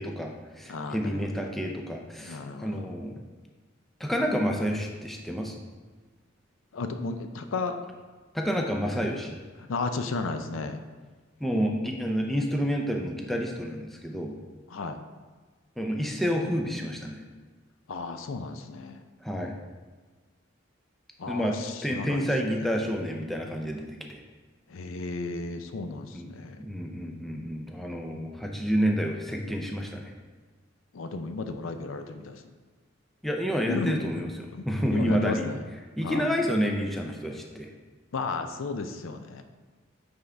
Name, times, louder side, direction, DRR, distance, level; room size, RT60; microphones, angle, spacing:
voice 1, 0.0-3.2 4.0-5.6 8.3-9.4 11.4-14.3 15.8-17.2 19.2-19.5 21.3-21.6 21.8-24.2 26.1-26.3 26.6-30.1 33.2-35.5 36.0-37.7, equal, ahead, 1 dB, 0.5 m, -29 dB
voice 2, 0.7-1.5 2.2-2.9 6.7-7.8 9.7-10.8 14.7-15.0 17.9-19.0 21.2-22.8 24.7-26.6 30.9-32.4 33.7-34.0 34.5-34.6 34.9-35.6 36.0-36.3 38.1-39.4, left 3 dB, 75° left, 7 dB, 0.5 m, -34 dB
9.2 x 3.6 x 3.4 m, 1.4 s
head